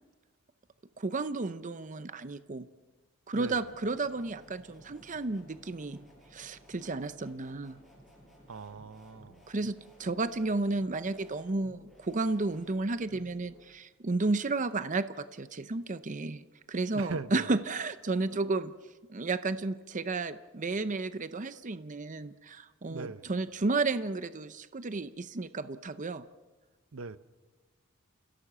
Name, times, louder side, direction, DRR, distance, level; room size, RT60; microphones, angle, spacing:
voice 1, 1.0-2.7 3.3-6.0 6.3-7.8 9.5-18.7 19.1-26.2, right 3 dB, 35° right, 0.7 m, -32 dB
sound 1, 3.3-13.6, equal, ahead, 7.8 m, -57 dB
voice 2, 8.5-9.4 16.9-17.5 22.9-23.3 26.9-27.2, right 4 dB, 70° right, 0.8 m, -40 dB
29.5 x 17.0 x 7.4 m
head